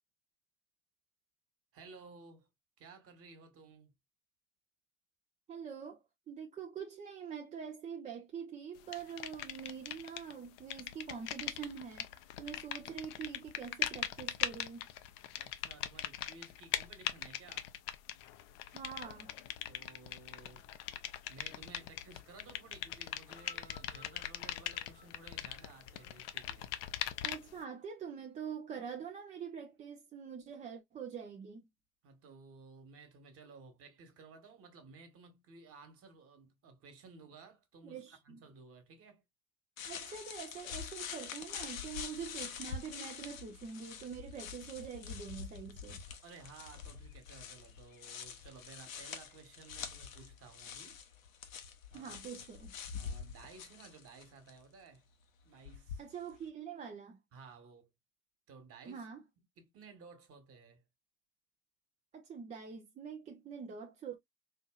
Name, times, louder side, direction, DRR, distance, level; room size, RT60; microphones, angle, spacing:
voice 1, 1.7-2.5 2.8-3.9 15.2-17.7 19.7-20.7 21.3-26.7 32.0-39.2 46.2-51.0 51.9-52.1 52.9-55.1 55.4-56.0 57.3-57.9 58.5-59.0 59.6-60.8, right 4 dB, 35° right, 1.4 m, -56 dB
voice 2, 5.5-12.1 12.4-14.9 18.7-19.3 27.2-31.6 37.8-38.4 39.8-46.0 51.9-52.7 56.0-57.2 58.9-59.2 62.1-64.2, right 7 dB, 20° right, 0.5 m, -45 dB
sound 1, 8.9-10.3 10.6-27.6, left 12 dB, 45° left, 0.6 m, -41 dB
sound 2, 23.4-27.8 28.7-28.8, left 1 dB, 85° right, 1.0 m, -61 dB
sound 3, 39.8-54.6 55.6-56.4, left 7 dB, 70° left, 0.9 m, -46 dB
4.3 x 2.6 x 2.3 m
figure-of-eight pair, 85°, 41 cm